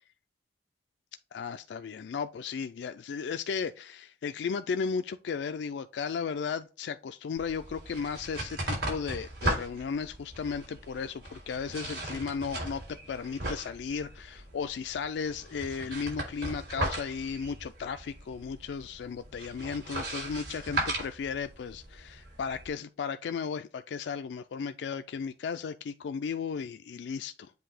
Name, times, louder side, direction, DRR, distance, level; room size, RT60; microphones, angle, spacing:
voice 1, 1.3-27.5, left 6 dB, 80° left, 0.3 m, -35 dB
sound 1, 7.4-22.7, right 1 dB, 70° right, 3.5 m, -37 dB
7.8 x 2.7 x 4.9 m
head